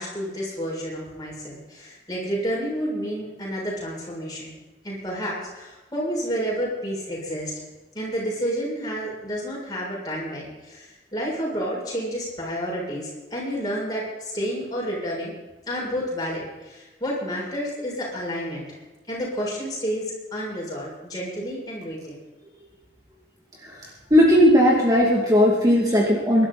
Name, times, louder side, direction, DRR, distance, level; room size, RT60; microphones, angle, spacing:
voice 1, 0.0-4.6 4.8-7.6 7.9-15.3 15.7-18.8 19.1-22.1, equal, 20° left, -5 dB, 7.1 m, -30 dB
voice 2, 23.6-26.5, equal, 20° right, -3 dB, 2.5 m, -17 dB
23.5 x 12.0 x 4.2 m, 1.1 s
head